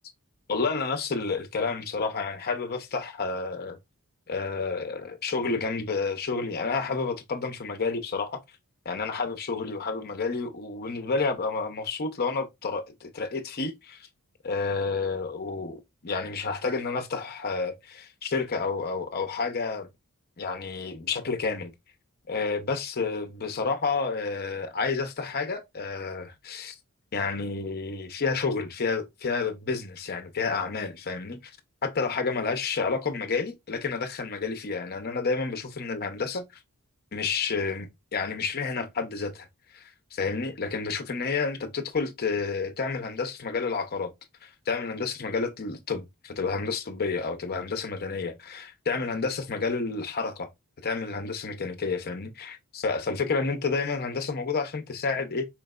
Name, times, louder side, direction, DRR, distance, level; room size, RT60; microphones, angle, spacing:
voice 1, 0.5-3.8 4.3-8.4 8.8-14.1 14.4-19.9 20.4-21.7 22.3-26.8 27.1-31.4 31.8-36.5 37.1-39.5 39.7-44.1 44.4-50.5 50.8-55.5, left 4 dB, 45° left, 0.7 m, -30 dB
4.5 x 3.2 x 2.3 m
head